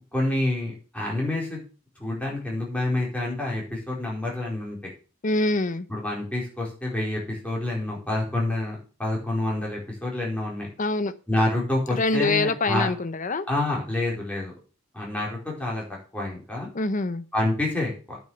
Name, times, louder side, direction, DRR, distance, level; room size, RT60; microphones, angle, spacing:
voice 1, 0.1-1.6 2.0-4.9 5.9-10.7 11.3-12.9 13.5-14.5 14.9-15.8 16.1-16.7 17.3-18.2, left 2 dB, 5° left, -3 dB, 4.4 m, -28 dB
voice 2, 5.2-5.9 10.8-11.1 11.9-13.5 16.7-17.2, left 2 dB, 35° left, 13 dB, 0.8 m, -25 dB
9.1 x 6.2 x 7.1 m, 0.36 s
head